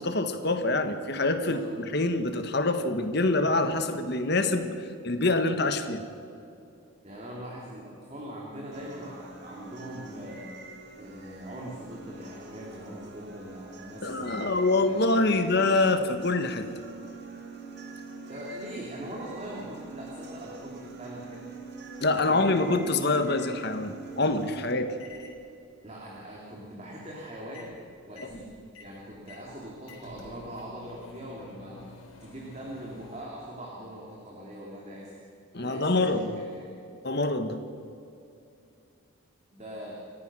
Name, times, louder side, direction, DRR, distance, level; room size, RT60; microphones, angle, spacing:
voice 1, 0.0-1.6 1.9-6.0 14.0-16.7 22.0-24.9 35.5-36.3 37.0-37.6, left 2 dB, 50° left, 8 dB, 1.6 m, -25 dB
voice 2, 7.0-10.4 10.9-15.5 18.1-21.4 22.1-22.7 25.8-27.7 28.1-28.5 28.8-31.8 32.2-35.2 35.6-36.6 39.5-40.0, equal, 30° right, -3 dB, 3.1 m, -42 dB
sound 1, 8.7-24.7, right 3 dB, 50° right, 2.4 m, -45 dB
sound 2, 25.0-25.4 27.4-27.8 28.1-33.2, left 3 dB, 75° left, 3.8 m, -50 dB
29.5 x 14.5 x 6.3 m, 2.5 s
head